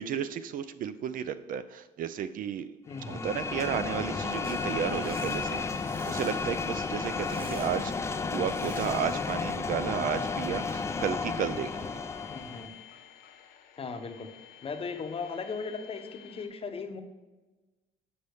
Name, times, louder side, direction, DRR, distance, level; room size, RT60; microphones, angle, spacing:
voice 1, 0.0-2.7 3.1-7.9 8.3-12.0, right 8 dB, 55° right, 13 dB, 0.4 m, -33 dB
voice 2, 2.9-3.3 12.3-12.7 13.8-14.3 14.6-17.0, left 5 dB, 35° left, 7 dB, 0.8 m, -37 dB
Sound produced when folding a projector screen, 2.9-12.7, left 4 dB, 15° left, 0.3 m, -33 dB
sound 1, 4.4-9.4, right 3 dB, 35° right, 0.8 m, -50 dB
sound 2, 6.5-16.5, left 10 dB, 70° left, 0.8 m, -53 dB
7.8 x 5.4 x 3.4 m, 1.2 s
cardioid pair, 110°, 17 cm